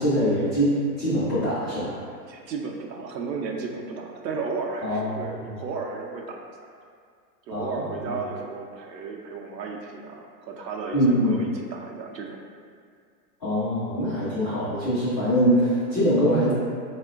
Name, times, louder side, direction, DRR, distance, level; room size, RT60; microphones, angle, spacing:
voice 1, 0.0-1.9 4.8-5.6 7.5-8.2 10.9-11.4 13.4-16.5, equal, 15° left, -15 dB, 0.3 m, -23 dB
voice 2, 2.3-6.4 7.5-12.4, right 4 dB, 85° right, 1 dB, 0.6 m, -34 dB
4.3 x 2.1 x 2.3 m, 2.2 s
hypercardioid pair, 130°, 49 cm